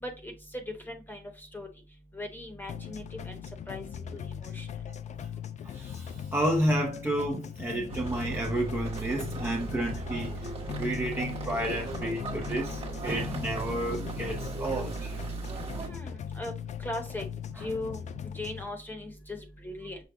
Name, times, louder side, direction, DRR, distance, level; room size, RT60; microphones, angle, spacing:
voice 1, 0.0-1.2 1.5-1.7 2.1-3.4 3.7-4.7 15.8-16.5 16.8-17.2 17.6-18.0 18.3-20.0, left 2 dB, 15° left, 1.1 m, -38 dB
sound 1, 2.7-18.7, left 8 dB, 55° left, 0.4 m, -39 dB
voice 2, 5.6-15.1 17.6-17.7, right 1 dB, 15° right, 0.7 m, -31 dB
sound 2, 7.9-15.9, right 4 dB, 40° right, 1.2 m, -38 dB
6.0 x 2.3 x 3.5 m
wide cardioid pair, 155°, 15 cm